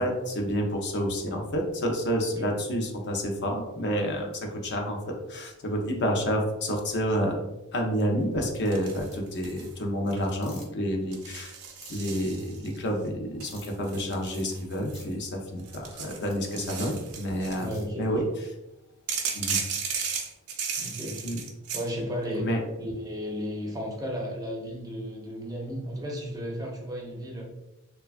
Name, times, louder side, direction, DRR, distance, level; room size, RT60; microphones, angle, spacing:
voice 1, 0.0-7.4 7.7-11.6 11.9-18.2 19.3-19.6 21.2-21.4 22.4-22.6, equal, 50° left, 2 dB, 0.5 m, -29 dB
sound 1, 8.7-9.7 10.1-10.5 11.1-12.8 13.4-15.1 15.6-17.7 19.1-21.9, right 6 dB, 70° right, 0.5 m, -35 dB
sound 2, 9.1-9.2 10.4-10.7 11.8-12.1 13.4-13.8 14.9-15.1 16.3-16.4 17.7-17.9, left 2 dB, 30° left, 0.9 m, -48 dB
voice 2, 17.6-18.2 20.8-21.4 21.7-22.5 22.8-27.4, equal, 15° right, 0 dB, 0.4 m, -34 dB
3.1 x 2.2 x 2.4 m, 0.94 s
head